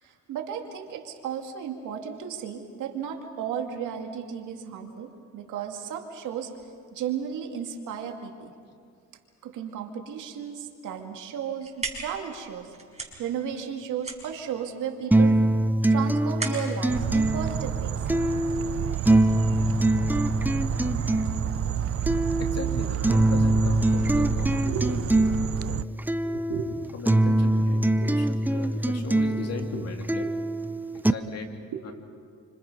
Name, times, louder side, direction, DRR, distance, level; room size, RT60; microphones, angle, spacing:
voice 1, 0.0-6.5 6.9-8.5 9.4-12.7 13.2-15.4 15.9-18.1 24.6-25.0 25.2-25.7 26.2-27.0 27.9-28.6 29.7-29.9 30.2-30.3 31.7-31.8, right 8 dB, 85° right, 3 dB, 2.4 m, -34 dB
sound 1, 11.4-18.2, right 3 dB, 20° right, 5.6 m, -39 dB
sound 2, 15.1-31.1, right 1 dB, 5° right, 0.7 m, -24 dB
sound 3, 16.9-25.8, right 11 dB, 50° right, 0.5 m, -30 dB
voice 2, 22.0-25.0 25.6-25.8 26.9-30.3 30.9-31.5 31.8-31.9, left 4 dB, 55° left, 3 dB, 3.0 m, -38 dB
29.0 x 25.5 x 5.5 m, 2.2 s
cardioid pair, 90°, 30 cm